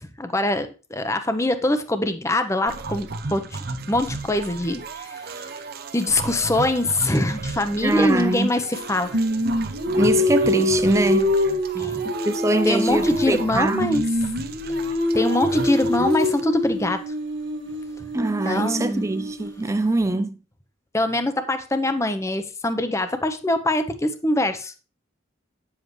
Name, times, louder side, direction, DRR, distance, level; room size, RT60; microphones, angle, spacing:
voice 1, 0.2-3.6 3.9-5.5 5.9-9.2 11.7-12.0 12.6-14.0 15.1-17.0 18.4-19.1 20.9-24.7, left 1 dB, 15° left, 0.7 m, -23 dB
sound 1, 2.7-16.4, right 3 dB, 50° right, 0.7 m, -34 dB
voice 2, 7.8-8.5 9.9-11.3 12.0-13.9 18.1-20.4, right 2 dB, 15° right, 0.4 m, -23 dB
Singing, 9.1-13.4 13.7-19.7, left 2 dB, 70° right, 1.4 m, -25 dB
9.5 x 7.3 x 3.2 m
head